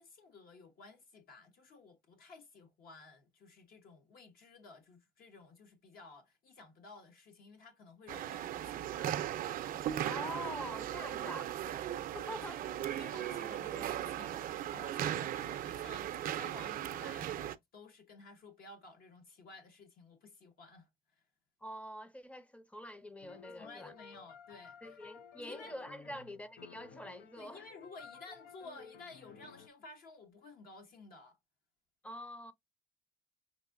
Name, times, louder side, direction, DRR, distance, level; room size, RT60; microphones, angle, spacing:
voice 1, 0.0-9.1 11.6-11.8 12.3-21.2 23.6-25.0 25.4-25.7 27.4-31.4, left 3 dB, 60° left, 1.0 m, -54 dB
sound 1, 8.1-17.6, right 11 dB, 55° right, 0.5 m, -38 dB
voice 2, 10.0-11.5 12.1-12.7 21.6-23.9 24.8-27.7 32.0-32.5, left 1 dB, 5° left, 0.6 m, -45 dB
sound 2, 23.2-29.7, left 6 dB, 85° left, 0.6 m, -54 dB
5.8 x 2.5 x 2.5 m
cardioid pair, 110°, 17 cm